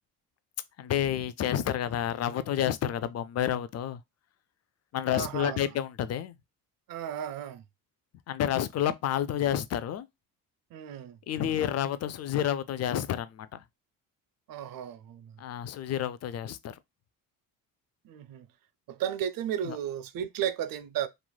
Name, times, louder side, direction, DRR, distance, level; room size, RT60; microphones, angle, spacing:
voice 1, 0.8-4.0 4.9-6.4 8.3-10.1 11.3-13.6 15.4-16.8 19.6-19.8, left 10 dB, 35° left, 0.4 m, -30 dB
voice 2, 5.1-5.6 6.9-7.6 10.7-11.2 14.5-15.4 18.0-18.5 18.9-21.1, right 10 dB, 50° right, 0.5 m, -34 dB
3.0 x 2.5 x 2.2 m
hypercardioid pair, 60°, 45 cm